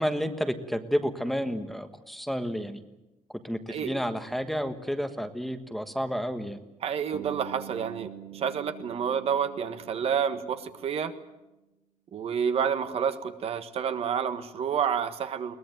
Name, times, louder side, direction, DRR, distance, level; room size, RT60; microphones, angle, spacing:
voice 1, 0.0-2.8 3.4-6.6, equal, ahead, 7 dB, 1.4 m, -30 dB
voice 2, 3.7-4.0 6.8-11.1 12.1-15.6, right 7 dB, 50° right, 9 dB, 1.5 m, -29 dB
Bass guitar, 7.1-11.2, right 12 dB, 70° right, 2.5 m, -46 dB
22.0 x 19.5 x 9.2 m, 0.99 s
cardioid pair, 145°, 13 cm